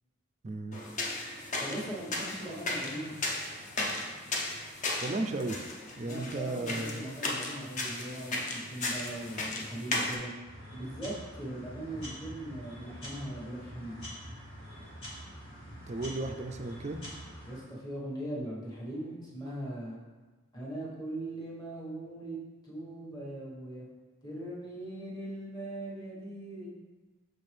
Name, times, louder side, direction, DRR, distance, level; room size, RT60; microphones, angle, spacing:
voice 1, 0.4-0.8 5.0-5.6 6.0-7.0 15.9-17.0, right 2 dB, 30° right, 6 dB, 0.3 m, -34 dB
sound 1, 0.7-10.2, left 2 dB, 35° left, 0.6 m, -36 dB
voice 2, 1.6-3.1 6.0-10.3 10.7-14.0 17.4-20.0 20.5-22.4 22.6-23.9 24.2-26.7, right 1 dB, 20° left, -6 dB, 1.2 m, -40 dB
sound 2, 10.4-17.6, equal, 55° left, 1.5 m, -45 dB
6.5 x 4.4 x 3.3 m, 1.3 s
head